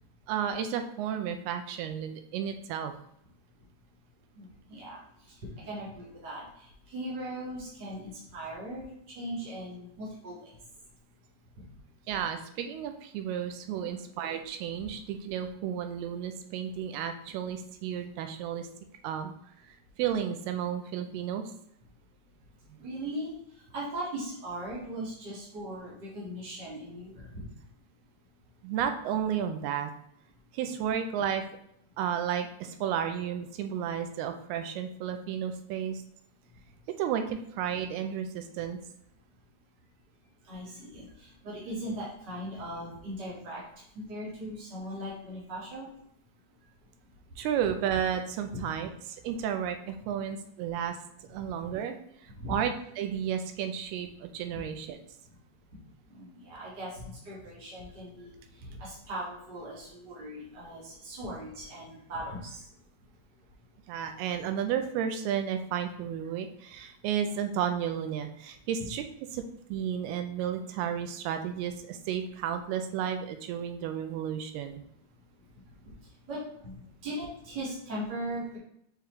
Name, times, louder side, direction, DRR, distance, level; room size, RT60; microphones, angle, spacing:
voice 1, 0.3-2.9 12.1-18.7 19.0-19.3 19.6-21.4 28.6-29.9 30.5-31.4 32.0-36.0 37.0-38.8 47.4-52.0 52.2-55.0 63.9-69.0 69.3-69.4 69.7-74.8, right 9 dB, 80° right, 7 dB, 2.4 m, -32 dB
voice 2, 4.3-5.0 5.7-10.5 13.8-13.9 14.8-14.9 22.8-23.3 23.7-27.5 40.5-43.6 44.1-45.9 48.5-48.6 51.4-51.5 52.4-52.5 56.1-62.7 68.8-68.9 76.3-78.6, right 1 dB, 50° right, -7 dB, 1.3 m, -39 dB
6.8 x 4.8 x 3.1 m, 0.73 s
omnidirectional pair, 4.7 m